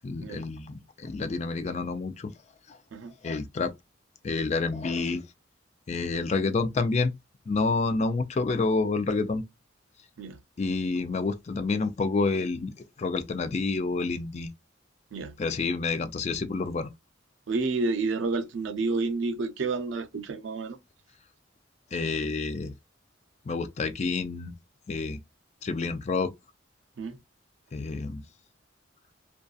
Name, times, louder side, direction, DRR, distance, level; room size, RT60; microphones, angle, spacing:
voice 1, 0.0-2.3 2.7-2.8 3.2-3.7 4.2-5.2 5.9-7.1 7.5-9.4 10.6-12.7 13.0-14.5 15.4-16.9 21.9-22.7 23.5-24.5 24.9-25.2 25.6-26.3 27.7-28.2, left 3 dB, 35° left, 0.3 m, -28 dB
voice 2, 17.5-20.8 27.0-27.2, right 3 dB, 80° right, 0.5 m, -30 dB
2.6 x 2.3 x 2.3 m
head